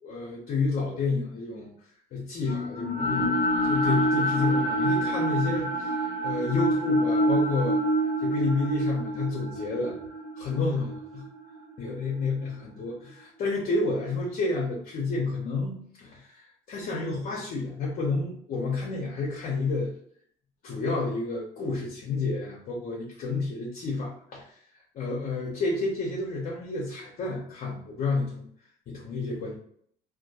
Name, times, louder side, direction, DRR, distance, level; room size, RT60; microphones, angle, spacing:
voice 1, 0.0-1.7 2.1-3.3 3.6-10.0 10.4-11.2 11.8-19.9 20.6-24.6 24.9-28.5 28.9-29.6, left 3 dB, 60° left, -4 dB, 0.6 m, -30 dB
sound 1, 2.4-12.6, equal, 85° right, 0.8 m, -27 dB
2.2 x 2.2 x 2.7 m, 0.63 s
cardioid pair, 110°, 17 cm